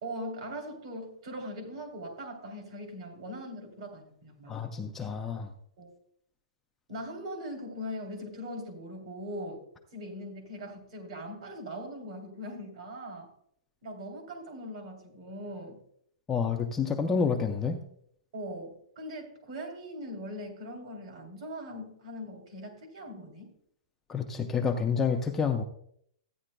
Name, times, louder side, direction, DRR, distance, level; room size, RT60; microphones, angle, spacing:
voice 1, 0.0-4.5 5.8-5.9 6.9-9.6 9.9-13.3 13.8-15.8 18.3-23.5, equal, 50° right, 3 dB, 3.1 m, -40 dB
voice 2, 4.5-5.5 16.3-17.8 24.1-25.6, left 5 dB, 10° left, 2 dB, 0.4 m, -29 dB
14.5 x 9.7 x 2.2 m, 0.68 s
hypercardioid pair, 175°, 4 cm